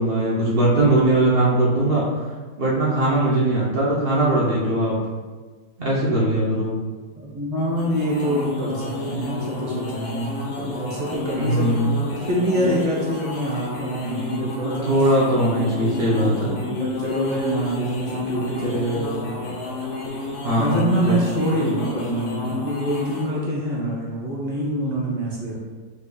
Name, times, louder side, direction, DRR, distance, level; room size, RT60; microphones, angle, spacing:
voice 1, 0.0-2.0 2.6-5.0 5.8-6.7 11.4-12.0 14.9-16.6 20.4-21.2, right 1 dB, 80° right, -6 dB, 0.5 m, -20 dB
voice 2, 7.2-14.9 16.4-19.5 20.6-25.6, right 1 dB, 30° right, -4 dB, 0.7 m, -25 dB
sound 1, 7.6-23.4, left 3 dB, 90° left, 1.7 m, -31 dB
5.0 x 4.1 x 2.3 m, 1.4 s
omnidirectional pair, 2.1 m